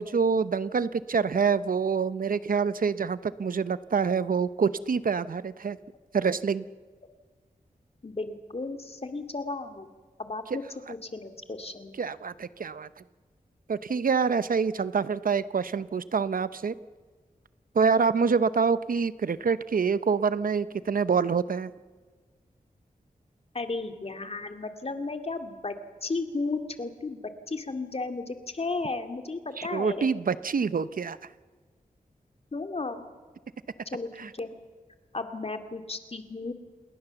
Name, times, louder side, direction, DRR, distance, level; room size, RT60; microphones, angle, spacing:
voice 1, 0.0-5.8 6.1-6.6 12.0-12.9 13.7-16.7 17.7-21.7 29.6-31.2 34.2-34.3, right 5 dB, 75° right, 15 dB, 0.8 m, -26 dB
voice 2, 8.0-9.9 10.2-10.6 10.9-12.0 23.5-25.7 26.0-30.1 32.5-33.0 33.9-34.5 35.1-36.5, left 3 dB, 45° left, 6 dB, 2.4 m, -34 dB
28.5 x 20.5 x 7.0 m, 1.5 s
wide cardioid pair, 85°, 15 cm